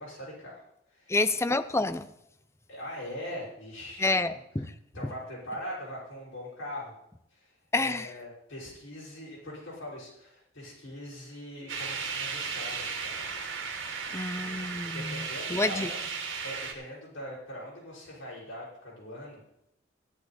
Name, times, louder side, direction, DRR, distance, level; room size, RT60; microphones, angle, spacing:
voice 1, 0.0-1.2 2.7-4.4 4.9-6.9 7.3-13.4 14.9-16.0 16.4-19.4, left 1 dB, 65° left, -6 dB, 5.6 m, -42 dB
voice 2, 1.1-2.1 4.0-4.7 5.0-5.1 7.7-8.1 14.1-15.9, left 2 dB, 15° left, 12 dB, 0.6 m, -28 dB
sound 1, 11.7-16.7, right 5 dB, 80° right, 2.4 m, -35 dB
14.5 x 10.5 x 4.2 m, 0.78 s
head